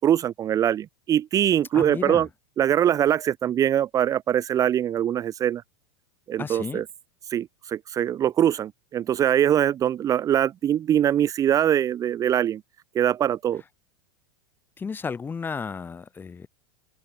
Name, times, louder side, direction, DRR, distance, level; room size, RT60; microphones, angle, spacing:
voice 1, 0.0-2.3 2.6-5.6 6.3-6.8 7.3-12.6 12.9-13.6, right 10 dB, 25° right, 1.5 m, -23 dB
voice 2, 1.7-2.3 6.4-6.8 14.8-16.5, left 5 dB, 15° left, 6.9 m, -33 dB
open air
supercardioid pair, 140°, 13 cm